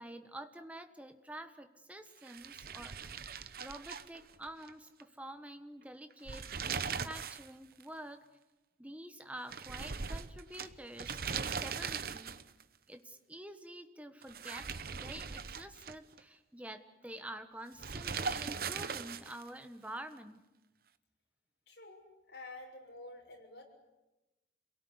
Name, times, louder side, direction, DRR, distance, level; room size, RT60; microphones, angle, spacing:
voice 1, 0.0-3.1 3.6-8.2 8.8-12.4 12.9-14.7 15.0-20.4, right 1 dB, 10° right, 8 dB, 1.4 m, -48 dB
sound 1, 2.2-4.7 5.0-5.1 6.1-7.5 7.8-7.9 9.5-12.6 14.2-16.2 17.8-19.5, right 5 dB, 55° right, 0.9 m, -40 dB
voice 2, 21.7-23.6, left 2 dB, 65° left, 1 dB, 6.3 m, -50 dB
27.5 x 18.0 x 9.8 m, 1.0 s
head